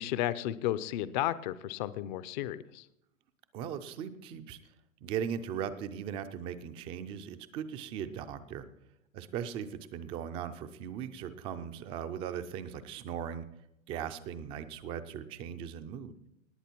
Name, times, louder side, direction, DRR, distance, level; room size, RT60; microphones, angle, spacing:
voice 1, 0.0-2.8, left 13 dB, 35° left, 16 dB, 0.6 m, -33 dB
voice 2, 3.5-4.6 5.0-8.7 9.1-13.5 13.9-16.1, right 8 dB, 15° right, 9 dB, 0.4 m, -38 dB
19.0 x 8.1 x 4.5 m, 0.82 s
hypercardioid pair, 130°, 39 cm